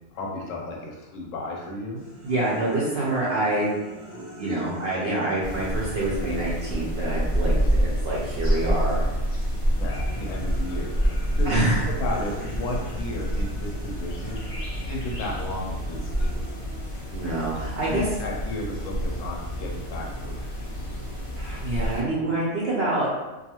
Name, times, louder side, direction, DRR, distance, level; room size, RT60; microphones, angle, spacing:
voice 1, 0.1-2.0 9.8-14.4 14.9-16.5 17.5-21.1, left 2 dB, 70° left, -1 dB, 0.9 m, -34 dB
sound 1, 2.0-9.0 9.4-18.0, equal, 5° left, 0.9 m, -46 dB
voice 2, 2.2-3.7 4.1-9.1 11.4-11.8 17.1-18.0 21.4-23.1, right 2 dB, 60° right, -6 dB, 0.6 m, -26 dB
sound 2, 5.4-22.0, equal, 45° left, 0.4 m, -28 dB
2.4 x 2.3 x 2.9 m, 1.1 s
omnidirectional pair, 1.5 m